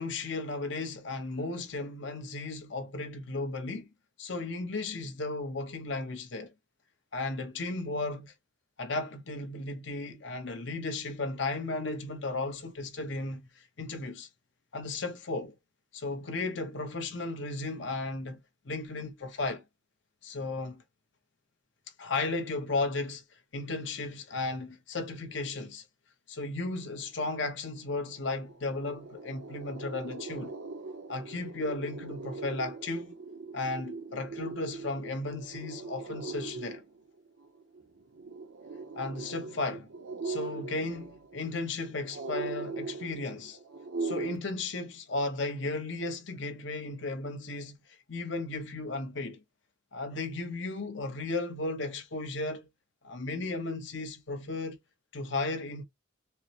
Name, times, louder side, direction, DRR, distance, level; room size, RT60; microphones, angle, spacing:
voice 1, 0.0-3.9 4.2-6.5 7.1-8.3 8.8-14.3 14.7-15.5 15.9-19.6 20.2-20.8 22.0-23.2 23.5-25.8 26.3-30.5 31.1-33.1 33.5-36.8 39.0-39.9 40.2-43.6 44.0-47.8 48.1-49.4 49.9-52.7 53.0-54.8 55.1-55.8, left 3 dB, 65° left, 0.9 m, -35 dB
sound 1, 27.8-27.9 28.2-44.4, right 3 dB, 75° right, 0.7 m, -40 dB
4.3 x 2.0 x 2.7 m
head